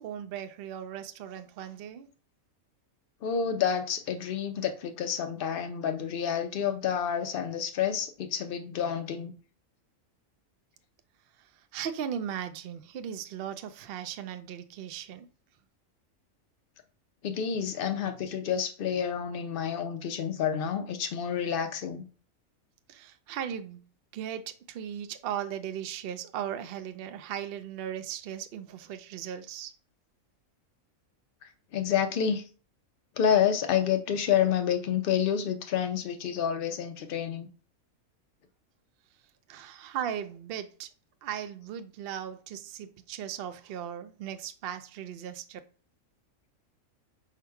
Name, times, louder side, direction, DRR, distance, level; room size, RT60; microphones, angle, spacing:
voice 1, 0.0-2.1 11.7-15.3 22.9-23.8 24.1-29.7 39.5-40.9 41.2-45.6, right 9 dB, 70° right, 0.5 m, -37 dB
voice 2, 3.2-9.3 17.2-22.0 31.4-32.4 33.2-37.5, left 8 dB, 55° left, 0.6 m, -29 dB
4.7 x 2.1 x 4.6 m
omnidirectional pair, 1.5 m